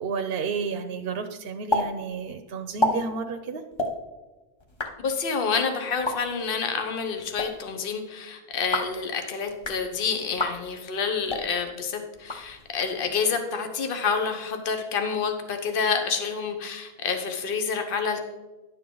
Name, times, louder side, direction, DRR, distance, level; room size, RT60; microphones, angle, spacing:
voice 1, 0.0-3.6, right 5 dB, 70° right, 6 dB, 0.9 m, -31 dB
sound 1, 1.7-1.8 2.1-2.2 2.6-2.9 3.7-3.9 4.6-4.9 5.9-6.1 7.2-7.5 8.5-9.0 9.5-9.8 10.3-10.5 11.2-11.4 12.1-12.8, left 1 dB, 30° left, 1.0 m, -28 dB
voice 2, 5.0-18.2, left 5 dB, 60° left, 6 dB, 1.1 m, -28 dB
11.0 x 7.1 x 3.8 m, 1.1 s
omnidirectional pair, 1.1 m